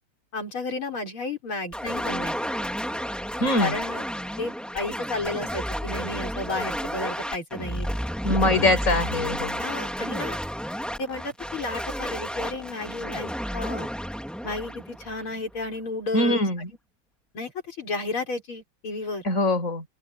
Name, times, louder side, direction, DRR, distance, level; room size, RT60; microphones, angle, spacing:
voice 1, 0.3-2.3 3.6-4.0 4.4-7.9 9.6-10.4 11.0-13.9 14.4-16.4 17.3-19.2, left 3 dB, 75° left, 6.7 m, -32 dB
sound 1, 1.7-15.6, equal, ahead, 3.0 m, -31 dB
voice 2, 3.4-3.7 8.2-9.6 16.1-16.7 19.2-19.8, left 1 dB, 35° left, 5.5 m, -23 dB
open air
omnidirectional pair, 2.3 m